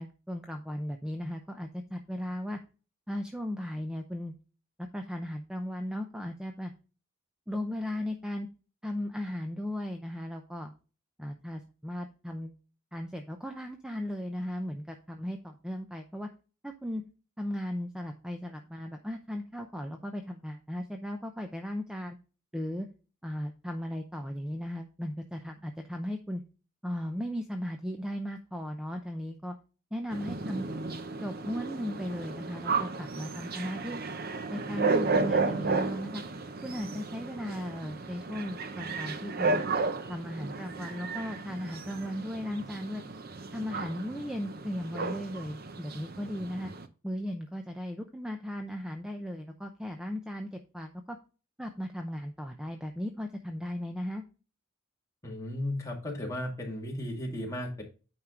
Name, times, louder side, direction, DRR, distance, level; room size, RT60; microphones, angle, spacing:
voice 1, 0.0-2.6 3.1-4.3 4.8-6.7 7.5-8.5 8.8-10.7 11.2-12.5 12.9-16.3 16.6-17.0 17.4-22.2 22.5-22.9 23.2-26.4 26.8-29.5 29.9-30.7 31.2-34.1 34.5-36.2 36.6-39.7 40.1-43.0 43.5-46.7 47.0-51.2 51.6-54.2, equal, 5° right, 4 dB, 0.6 m, -36 dB
sound 1, 30.1-46.9, right 3 dB, 45° right, 0.7 m, -33 dB
voice 2, 55.2-57.8, left 1 dB, 15° left, -1 dB, 2.1 m, -35 dB
9.1 x 4.7 x 3.7 m, 0.34 s
head